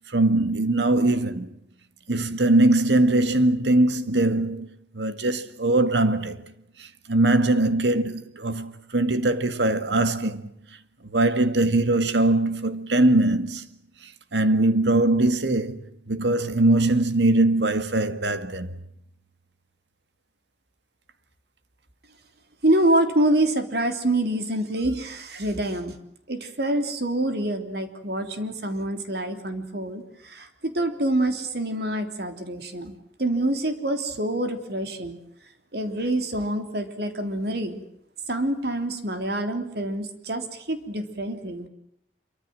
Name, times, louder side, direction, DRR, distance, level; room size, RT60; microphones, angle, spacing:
voice 1, 0.1-1.5 2.1-4.7 4.9-6.4 6.8-10.5 11.1-13.7 14.0-18.8, right 2 dB, 80° right, 2.0 m, -21 dB
voice 2, 22.6-25.9 26.3-32.9 33.2-35.2 35.7-37.8 38.3-41.7, right 1 dB, 60° right, 3.3 m, -26 dB
26.5 x 24.0 x 7.8 m
head